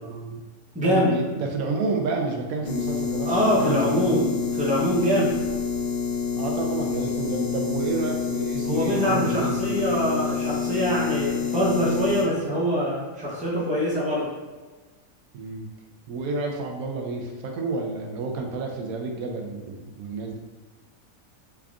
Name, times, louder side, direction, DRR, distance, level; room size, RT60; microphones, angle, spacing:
voice 1, 0.0-0.4 0.8-3.3 3.6-4.2 6.4-9.8 15.3-15.7 16.1-20.4, right 3 dB, 90° right, 2 dB, 1.1 m, -30 dB
voice 2, 0.7-1.2 3.2-5.4 8.6-14.3, equal, 5° right, -7 dB, 0.7 m, -24 dB
sound 1, 2.6-12.2, left 6 dB, 65° left, 1.2 m, -28 dB
3.5 x 3.5 x 2.4 m, 1.3 s
omnidirectional pair, 1.5 m